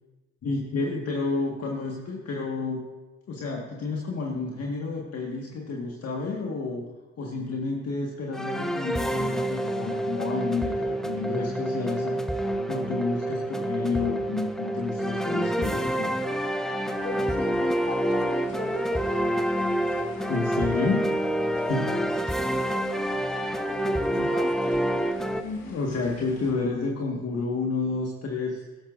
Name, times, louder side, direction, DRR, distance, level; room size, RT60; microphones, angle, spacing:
voice 1, 0.4-2.8 3.3-6.8 7.2-16.1 20.3-21.1 21.6-21.9 24.2-24.3 25.4-28.6, left 4 dB, 55° left, -1 dB, 1.6 m, -30 dB
sound 1, 8.3-25.4, right 1 dB, ahead, 0.8 m, -27 dB
sound 2, 16.9-26.5, left 3 dB, 75° left, 2.3 m, -49 dB
voice 2, 17.0-19.3 19.8-20.4 20.7-20.9 21.9-22.4 23.7-25.1 25.6-25.8, left 3 dB, 30° left, 0 dB, 3.3 m, -37 dB
13.5 x 12.5 x 2.6 m, 1.2 s
supercardioid pair, 60°, 31 cm